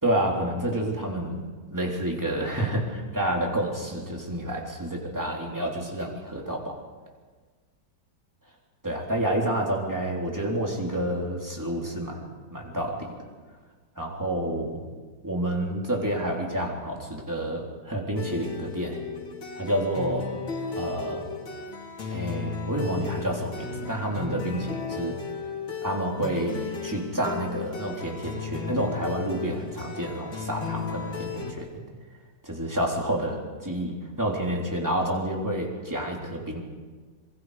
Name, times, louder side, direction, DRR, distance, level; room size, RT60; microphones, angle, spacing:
voice 1, 0.0-1.4 1.7-6.8 8.8-13.1 14.0-14.8 15.2-19.0 19.6-20.3 20.7-21.3 22.1-25.2 25.8-31.7 32.5-36.6, right 1 dB, 10° right, -1 dB, 3.4 m, -29 dB
sound 1, 18.2-31.5, left 5 dB, 80° left, 3.3 m, -35 dB
26.0 x 23.0 x 5.0 m, 1.4 s
omnidirectional pair, 2.1 m